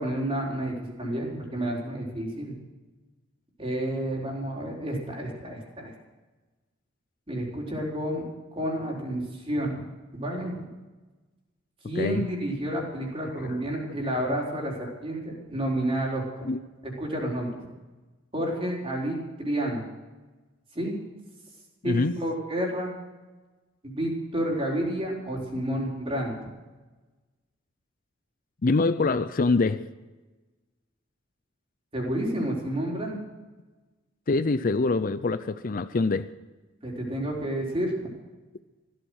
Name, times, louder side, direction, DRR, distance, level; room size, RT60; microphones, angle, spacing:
voice 1, 0.0-2.6 3.6-5.9 7.3-9.8 10.1-10.6 11.8-16.5 16.8-17.5 18.3-19.8 20.7-20.9 21.8-22.9 23.8-26.3 31.9-33.2 36.8-38.1, right 1 dB, 30° right, -1 dB, 4.2 m, -30 dB
voice 2, 21.8-22.2 28.6-29.8 34.3-36.3, left 3 dB, 45° left, 13 dB, 0.5 m, -24 dB
15.5 x 13.5 x 6.3 m, 1.2 s
head